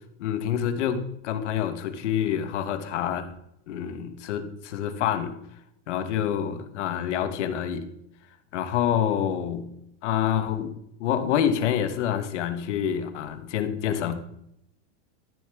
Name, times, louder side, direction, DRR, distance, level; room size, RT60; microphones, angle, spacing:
voice 1, 0.2-3.3 3.7-5.4 5.9-7.9 8.5-9.7 10.0-14.1, left 9 dB, 70° left, 10 dB, 1.2 m, -27 dB
13.5 x 6.8 x 3.4 m, 0.77 s
supercardioid pair, 175°, 36 cm